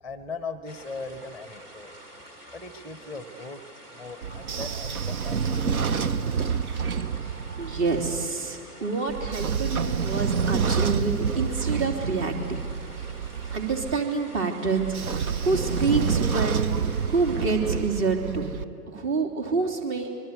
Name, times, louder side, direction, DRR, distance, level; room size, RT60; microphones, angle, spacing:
voice 1, 0.0-2.0 2.5-3.7 3.9-5.9 18.9-19.0, left 3 dB, 5° right, 11 dB, 0.7 m, -39 dB
sound 1, 0.7-17.5, right 1 dB, 85° right, 2.7 m, -48 dB
Train / Sliding door, 4.2-8.2 9.1-13.9 14.8-18.6, right 6 dB, 70° right, 1.0 m, -28 dB
voice 2, 7.2-12.6 13.5-18.5 18.9-20.1, right 4 dB, 45° right, 3 dB, 3.5 m, -27 dB
25.5 x 22.0 x 8.4 m, 2.2 s
figure-of-eight pair, 110°, 46 cm